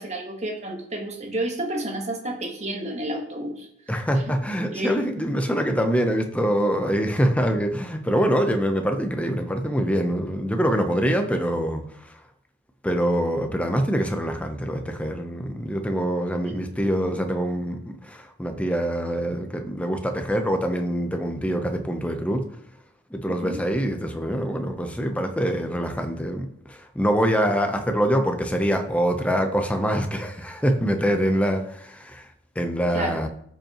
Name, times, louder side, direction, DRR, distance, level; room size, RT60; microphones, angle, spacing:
voice 1, 0.0-3.7 4.7-5.0 16.4-16.6 23.4-23.6 32.9-33.2, right 1 dB, 35° right, 1.4 m, -30 dB
voice 2, 3.9-12.1 12.8-22.5 23.1-32.3 32.6-33.3, equal, 5° left, 0.7 m, -24 dB
13.5 x 5.3 x 3.0 m
head